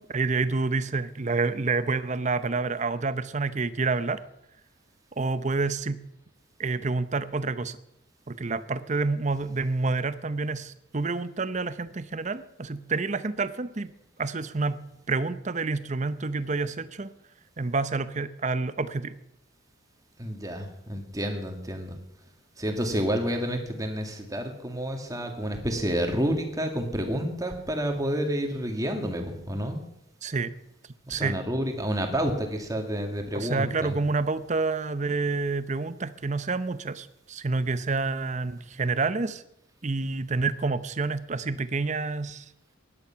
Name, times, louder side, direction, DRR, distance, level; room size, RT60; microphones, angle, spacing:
voice 1, 0.0-4.2 5.2-6.0 6.6-7.8 8.3-13.9 14.2-14.8 15.1-17.1 17.6-19.2 30.2-30.5 31.1-31.4 33.3-39.4 39.8-42.5, right 3 dB, 35° right, 14 dB, 0.7 m, -28 dB
voice 2, 20.2-22.0 22.6-29.8 31.1-33.9, equal, 15° right, 4 dB, 2.0 m, -29 dB
17.0 x 11.0 x 5.8 m, 0.83 s
head